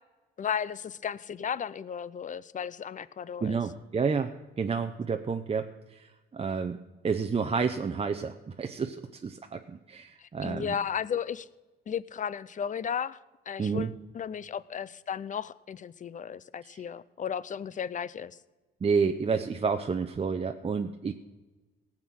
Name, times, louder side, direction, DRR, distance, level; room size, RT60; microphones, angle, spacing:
voice 1, 0.4-3.6 10.2-11.5 11.9-13.2 13.5-18.4, left 8 dB, 40° left, 18 dB, 0.6 m, -34 dB
voice 2, 3.4-6.8 7.0-10.7 13.6-13.9 16.6-16.8 18.8-21.1, right 5 dB, 30° right, 6 dB, 0.7 m, -30 dB
17.5 x 7.5 x 6.3 m, 1.2 s
cardioid pair, 90°, 20 cm